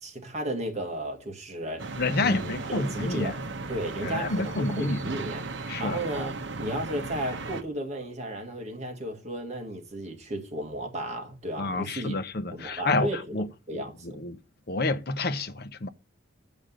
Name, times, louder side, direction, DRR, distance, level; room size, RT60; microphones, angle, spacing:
voice 1, 0.0-1.9 2.2-3.3 3.7-5.5 5.8-12.2 12.5-14.2, right 1 dB, 35° right, 1.9 m, -34 dB
sound 1, 1.8-7.6, right 3 dB, 65° right, 0.9 m, -36 dB
voice 2, 2.0-3.3 4.0-5.0 5.7-6.0 11.6-13.1 13.3-13.5 13.7-13.8 14.2-14.4 14.7-15.9, left 2 dB, 50° left, 0.7 m, -28 dB
8.3 x 5.1 x 7.6 m
head